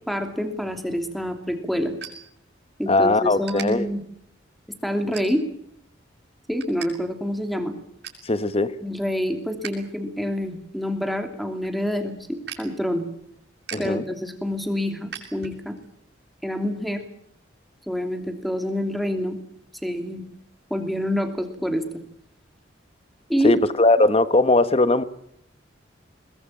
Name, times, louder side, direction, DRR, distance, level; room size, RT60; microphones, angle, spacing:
voice 1, 0.1-1.9 2.8-4.0 4.8-5.5 6.5-7.7 8.8-13.0 13.8-15.8 16.4-17.0 17.9-19.4 19.8-20.2 20.7-21.8 23.3-23.6, equal, ahead, 6 dB, 2.9 m, -27 dB
sound 1, 0.9-2.9 3.4-3.7 4.2-4.5 5.1-5.7 6.1-6.9 7.2-7.3 7.6-8.3 8.7-9.8 10.1-15.9, right 8 dB, 60° right, 7.2 m, -41 dB
voice 2, 2.9-3.9 8.2-8.8 13.7-14.0 23.4-25.0, left 2 dB, 30° left, 13 dB, 1.3 m, -19 dB
22.5 x 20.5 x 8.6 m, 0.71 s
head